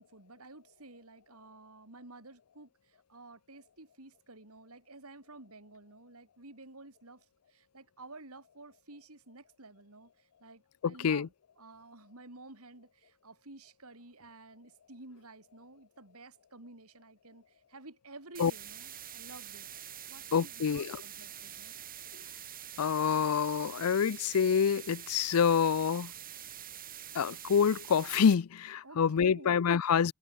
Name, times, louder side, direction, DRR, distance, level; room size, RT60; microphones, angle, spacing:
voice 1, 0.0-19.7 20.1-21.7 28.8-29.7, right 2 dB, 70° right, 3.9 m, -52 dB
voice 2, 10.8-11.3 18.4-18.5 20.3-21.0 22.8-26.1 27.1-30.1, left 7 dB, 70° left, 0.5 m, -27 dB
sound 1, 18.3-28.3, right 10 dB, 40° right, 5.7 m, -46 dB
head